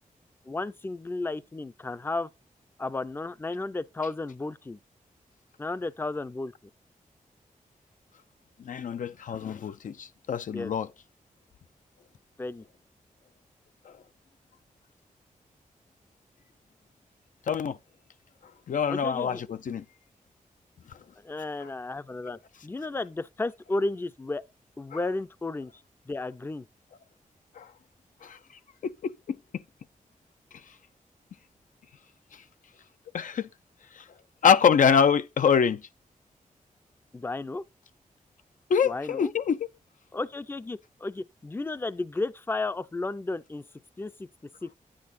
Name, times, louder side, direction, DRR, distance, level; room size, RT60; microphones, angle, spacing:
voice 1, 0.5-2.3 2.8-4.8 5.6-6.5 10.5-10.7 12.4-12.6 18.9-19.4 21.2-24.4 24.8-26.7 37.1-37.6 38.8-39.3 40.1-43.6 44.0-44.3 44.6-44.7, left 2 dB, 15° left, 0.4 m, -33 dB
voice 2, 8.7-10.9 13.9-14.0 17.5-17.8 18.7-19.8 27.6-27.7 28.2-28.4 28.8-29.4 33.1-33.5 34.0-34.1 34.4-35.8 38.7-39.7, left 7 dB, 70° left, 0.5 m, -25 dB
9.6 x 8.6 x 2.5 m
wide cardioid pair, 90°, 14 cm